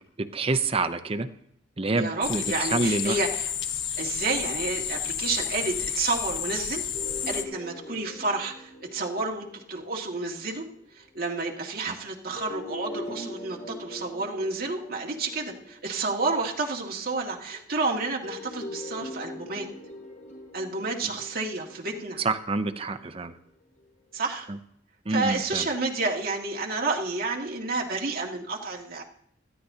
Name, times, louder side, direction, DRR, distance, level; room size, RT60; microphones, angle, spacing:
voice 1, 0.2-1.3 1.8-3.2 11.9-12.0 22.2-23.3 24.5-24.6 25.1-25.7, right 3 dB, 30° right, 9 dB, 0.6 m, -27 dB
voice 2, 2.0-3.5 4.0-6.8 7.3-10.7 11.0-19.7 20.5-22.2 24.1-24.5 25.1-29.0, right 3 dB, 55° right, -1 dB, 2.1 m, -30 dB
sound 1, 2.2-7.4, left 8 dB, 90° left, 1.0 m, -31 dB
sound 2, 6.9-10.8 12.4-16.8 18.2-23.4, left 1 dB, 50° left, 4.7 m, -42 dB
20.0 x 13.5 x 2.8 m, 0.70 s
head